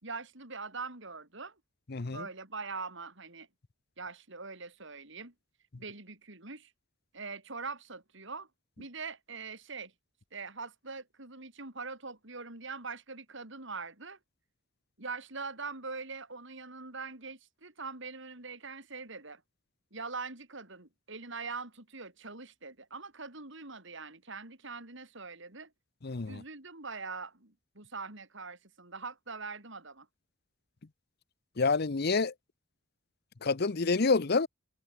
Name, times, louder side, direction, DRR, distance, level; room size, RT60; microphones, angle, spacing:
voice 1, 0.0-1.5 2.1-3.5 4.0-5.3 5.8-6.7 7.1-8.5 8.8-9.9 10.3-14.2 15.0-19.4 19.9-25.7 26.3-30.1, right 4 dB, 60° right, 4.5 m, -42 dB
voice 2, 1.9-2.3 26.0-26.4 31.6-32.3 33.4-34.5, left 4 dB, 50° left, 0.8 m, -28 dB
head